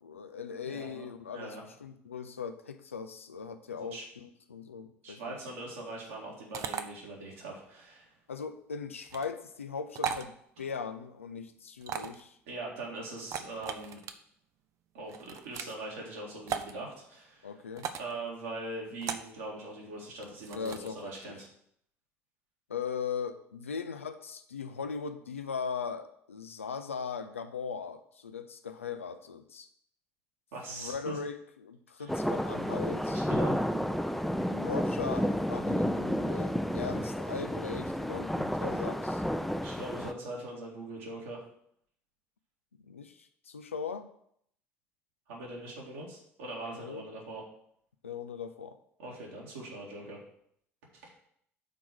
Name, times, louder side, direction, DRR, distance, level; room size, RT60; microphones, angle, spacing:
voice 1, 0.0-5.4 8.3-12.4 17.4-17.9 20.5-21.4 22.7-29.7 30.7-33.2 34.5-39.2 42.8-44.1 46.7-47.0 48.0-48.8, left 6 dB, 85° left, 9 dB, 0.5 m, -39 dB
voice 2, 0.6-1.1 1.3-1.6 3.7-4.0 5.0-8.1 12.5-14.0 14.9-17.5 18.0-21.5 30.5-31.2 33.1-33.6 39.6-41.4 45.3-47.4 49.0-50.2, right 2 dB, 70° right, -3 dB, 2.2 m, -41 dB
sound 1, 6.5-6.8 9.0-9.3 9.9-10.3 11.8-12.2 13.2-14.1 15.1-15.7 16.5-16.7 17.8-18.1 19.0-19.3 20.2-20.9, right 8 dB, 50° right, 0.6 m, -37 dB
sound 2, 32.1-40.1, equal, ahead, 0.6 m, -31 dB
6.0 x 4.6 x 6.1 m, 0.69 s
figure-of-eight pair, 60°, 7 cm